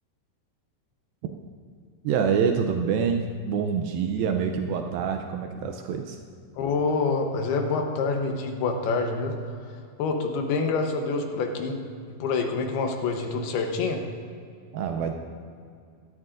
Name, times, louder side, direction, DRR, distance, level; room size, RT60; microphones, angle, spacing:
voice 1, 2.0-6.2 14.7-15.1, right 6 dB, 85° right, 4 dB, 2.1 m, -26 dB
voice 2, 6.6-9.5 10.0-11.8 12.1-14.0, left 4 dB, 75° left, 4 dB, 2.7 m, -27 dB
16.5 x 13.0 x 2.5 m, 2.3 s
omnidirectional pair, 4.9 m